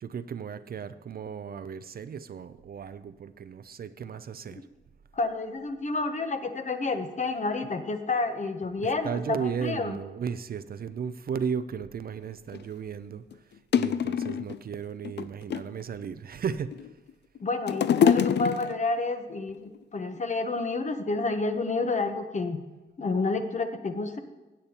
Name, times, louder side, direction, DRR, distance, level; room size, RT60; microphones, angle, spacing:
voice 1, 0.0-4.6 8.8-13.2 13.7-16.7, right 7 dB, 50° right, 13 dB, 0.4 m, -35 dB
voice 2, 5.1-10.0 17.4-22.6 23.0-24.2, left 3 dB, 35° left, 7 dB, 0.9 m, -29 dB
sound 1, 12.5-12.6 13.3-13.4 13.7-14.6 15.0-15.8 16.5-17.1 17.4-19.0 19.7-19.8, left 8 dB, 60° left, 0.4 m, -25 dB
15.5 x 8.5 x 2.9 m, 1.1 s
wide cardioid pair, 125°, 20 cm